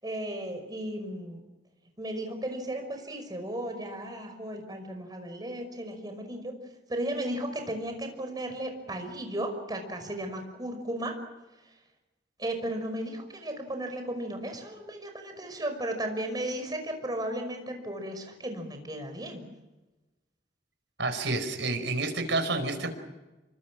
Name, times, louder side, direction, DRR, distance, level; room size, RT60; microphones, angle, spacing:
voice 1, 0.0-1.5 2.0-6.6 6.9-11.1 12.4-19.5, right 1 dB, 20° right, 5 dB, 5.6 m, -35 dB
voice 2, 21.0-22.9, right 2 dB, 75° right, 6 dB, 5.2 m, -29 dB
28.5 x 25.0 x 6.3 m, 1.1 s
head